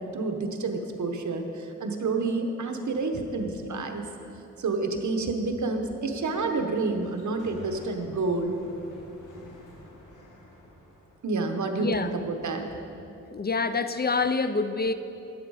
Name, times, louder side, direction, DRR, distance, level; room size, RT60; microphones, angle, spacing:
voice 1, 0.0-4.1 4.6-8.6 11.2-12.8, right 3 dB, 70° right, 5 dB, 1.1 m, -29 dB
Sliding door, 6.2-11.3, equal, 85° left, 1.9 m, -49 dB
voice 2, 13.3-14.9, left 4 dB, 35° left, 11 dB, 0.4 m, -26 dB
12.5 x 9.2 x 4.8 m, 2.9 s
wide cardioid pair, 105°, 30 cm